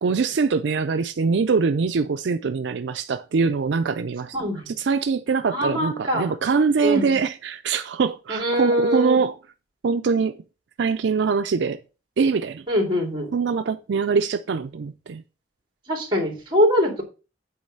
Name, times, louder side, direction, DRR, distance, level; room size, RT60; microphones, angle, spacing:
voice 1, 0.0-4.4 4.7-9.4 9.8-10.4 10.8-11.8 12.2-12.6 13.3-15.2, right 5 dB, 75° right, 0.4 m, -23 dB
voice 2, 4.3-4.7 5.5-6.3 6.8-7.2 8.3-9.2 12.7-13.3 15.9-17.0, equal, 25° right, 2.7 m, -23 dB
8.6 x 3.2 x 6.5 m
head